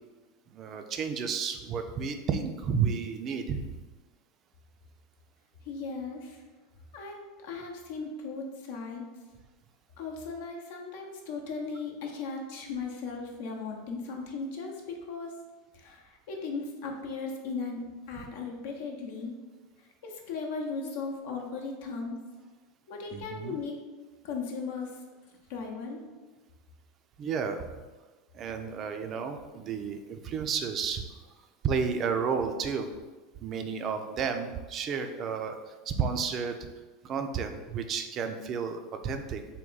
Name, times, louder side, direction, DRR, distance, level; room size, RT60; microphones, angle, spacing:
voice 1, 0.5-3.7 18.1-18.2 23.1-23.6 27.2-27.8 28.3-31.0 31.6-32.9 33.4-36.7 37.0-39.4, right 6 dB, 40° right, 6 dB, 0.4 m, -32 dB
voice 2, 5.6-6.4 6.9-9.1 10.0-15.4 15.7-17.8 18.1-19.3 20.0-22.2 22.9-23.8 24.2-25.0 25.5-26.0, left 4 dB, 65° left, 1 dB, 0.7 m, -37 dB
3.5 x 2.2 x 3.9 m, 1.3 s
hypercardioid pair, 90°, 0 cm